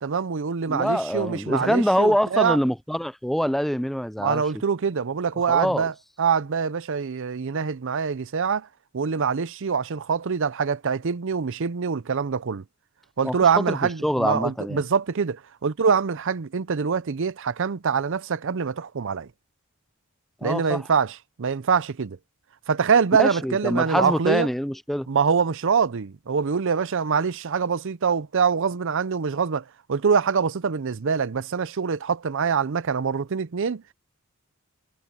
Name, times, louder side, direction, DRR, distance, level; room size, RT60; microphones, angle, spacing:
voice 1, 0.0-2.6 4.2-5.9 6.2-8.7 8.9-12.6 13.2-19.3 20.4-22.2 22.7-24.5 25.1-33.8, right 6 dB, 60° right, 0.6 m, -24 dB
voice 2, 0.7-4.4 5.5-5.9 13.2-13.8 14.0-14.8 20.4-20.8 23.2-25.1, equal, ahead, 0.4 m, -24 dB
head